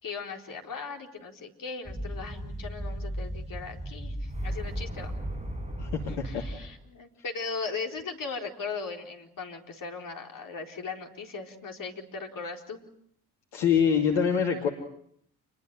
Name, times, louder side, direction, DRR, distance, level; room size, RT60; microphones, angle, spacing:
voice 1, 0.0-5.1 6.1-12.8, left 4 dB, 50° left, 2 dB, 4.3 m, -38 dB
sound 1, 1.9-6.8, equal, 15° right, 7.7 m, -35 dB
voice 2, 5.8-6.4 13.5-14.7, left 7 dB, 70° left, 2 dB, 2.5 m, -25 dB
28.5 x 21.5 x 7.6 m, 0.69 s
figure-of-eight pair, 40°, 43 cm